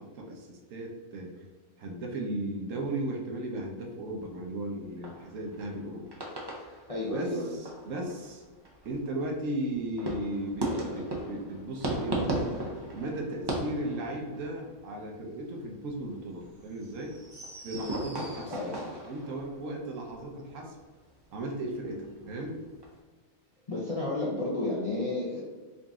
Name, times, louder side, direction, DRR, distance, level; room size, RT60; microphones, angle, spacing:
voice 1, 0.0-1.5 1.8-6.0 7.1-8.4 8.8-12.5 12.9-17.2 17.6-18.5 19.1-20.8 21.3-22.6, right 1 dB, 65° right, 0 dB, 1.0 m, -36 dB
sound 1, 4.1-5.9 6.1-7.3 7.6-23.0, right 1 dB, 40° right, 0.3 m, -38 dB
voice 2, 6.9-7.5 18.5-18.9 23.7-25.4, left 2 dB, 40° left, -6 dB, 0.5 m, -31 dB
3.9 x 2.5 x 3.5 m, 1.3 s
omnidirectional pair, 1.5 m